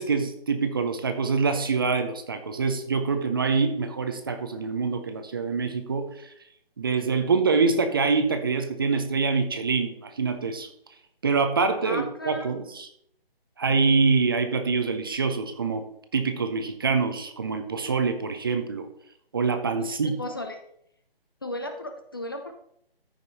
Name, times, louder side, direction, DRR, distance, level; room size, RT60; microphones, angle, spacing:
voice 1, 0.0-6.1 6.8-10.7 11.2-12.9 13.6-15.9 16.1-18.9 19.3-20.2, right 4 dB, 25° right, 7 dB, 0.6 m, -25 dB
voice 2, 11.8-12.5 20.0-20.6 21.4-22.5, left 1 dB, 25° left, 6 dB, 0.5 m, -35 dB
14.0 x 5.3 x 4.0 m, 0.71 s
figure-of-eight pair, 150°, 30 cm